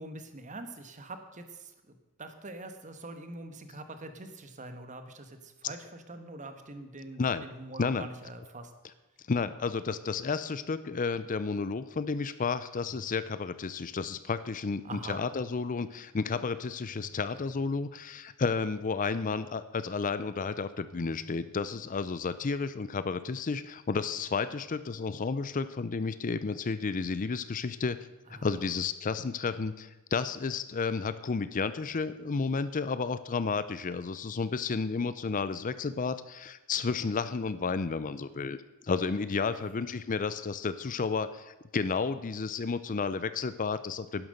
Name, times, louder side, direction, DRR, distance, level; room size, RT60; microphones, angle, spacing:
voice 1, 0.0-8.7 14.8-15.2 28.3-28.7 39.5-39.7, right 2 dB, 35° right, 8 dB, 1.3 m, -44 dB
voice 2, 9.3-28.0 28.4-38.6 38.9-44.3, left 4 dB, 35° left, 14 dB, 0.5 m, -32 dB
sound 1, 12.9-14.1 14.9-16.1 16.9-18.1 18.9-20.1 20.9-22.1, right 1 dB, 70° left, 3.2 m, -56 dB
11.5 x 10.5 x 6.6 m, 1.1 s
head